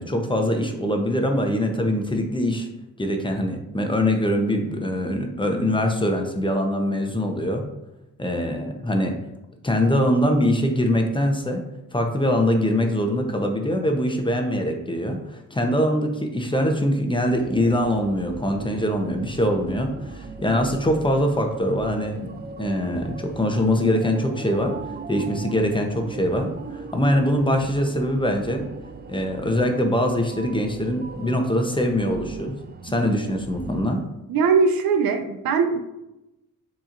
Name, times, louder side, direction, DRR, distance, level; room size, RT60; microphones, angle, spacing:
voice 1, 0.0-2.7 3.0-7.6 8.2-9.2 9.6-11.6 11.9-24.7 25.1-28.6 29.1-32.6 32.8-34.0, equal, 15° left, 3 dB, 0.8 m, -23 dB
sound 1, 17.3-33.8, right 4 dB, 30° right, 0.4 m, -39 dB
voice 2, 34.3-35.8, right 5 dB, 80° right, 8 dB, 0.6 m, -20 dB
6.8 x 3.1 x 2.5 m, 0.92 s
cardioid pair, 65°, 36 cm